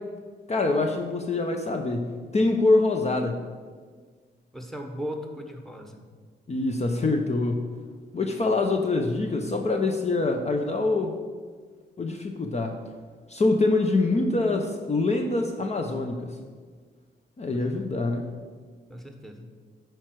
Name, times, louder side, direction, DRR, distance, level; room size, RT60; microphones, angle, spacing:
voice 1, 0.5-3.4 6.5-7.7 8.1-11.1 12.0-12.7 13.3-16.4 17.4-18.3, left 2 dB, 35° left, 4 dB, 0.8 m, -25 dB
voice 2, 4.5-6.0 17.5-17.6 18.9-19.5, equal, ahead, 4 dB, 1.3 m, -37 dB
9.7 x 4.6 x 6.2 m, 1.6 s
cardioid pair, 65°, 18 cm